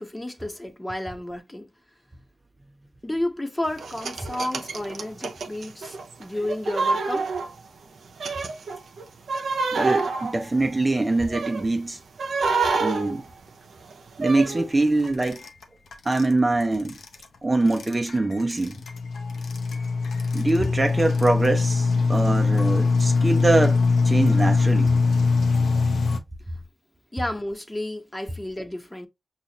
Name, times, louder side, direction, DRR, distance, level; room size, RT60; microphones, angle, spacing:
voice 1, 0.0-1.7 3.0-7.3 27.1-29.1, left 1 dB, 20° left, 1.2 m, -31 dB
sound 1, 3.8-7.8 8.2-11.7 12.2-14.7 15.1-15.2, right 4 dB, 80° right, 0.6 m, -28 dB
voice 2, 9.7-12.0 12.8-13.2 14.2-15.4 16.0-17.0 17.4-18.8 20.3-24.9, right 2 dB, 30° right, 0.7 m, -23 dB
sound 2, 15.0-15.6 15.9-16.2 16.9-17.2 17.7-26.2, left 4 dB, 85° left, 0.7 m, -22 dB
5.6 x 2.5 x 2.9 m
cardioid pair, 40°, 0 cm